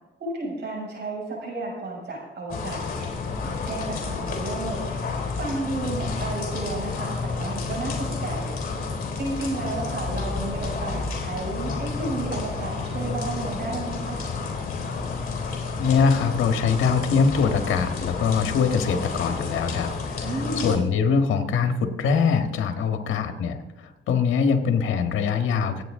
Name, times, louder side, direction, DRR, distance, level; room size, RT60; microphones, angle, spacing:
voice 1, 0.2-3.1 3.4-4.8 5.4-8.6 9.2-14.2 20.2-20.7, right 2 dB, 60° right, -2 dB, 6.6 m, -32 dB
sound 1, 2.5-20.8, left 4 dB, 50° left, 3.8 m, -30 dB
voice 2, 15.8-19.9 20.6-23.6 24.1-25.8, left 5 dB, 80° left, 6 dB, 1.6 m, -22 dB
25.5 x 9.3 x 3.8 m, 1.0 s
cardioid pair, 90°, 20 cm